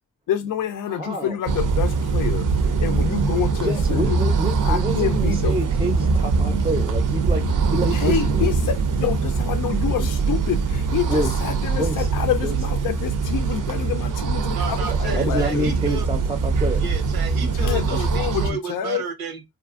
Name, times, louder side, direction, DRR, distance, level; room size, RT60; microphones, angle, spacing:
voice 1, 0.3-2.4 2.8-4.2 4.6-5.6 7.9-15.6 17.5-19.0, left 9 dB, 65° left, 0.5 m, -27 dB
voice 2, 0.9-1.4 3.6-8.5 10.0-10.1 11.1-11.4 11.7-12.1 12.4-12.6 14.9-16.9, right 1 dB, 15° right, 0.5 m, -28 dB
sound 1, 1.5-18.5, right 4 dB, 60° right, 0.5 m, -22 dB
voice 3, 14.5-16.1 16.8-19.4, right 5 dB, 85° right, 0.9 m, -32 dB
2.6 x 2.5 x 2.4 m
cardioid pair, 45°, 35 cm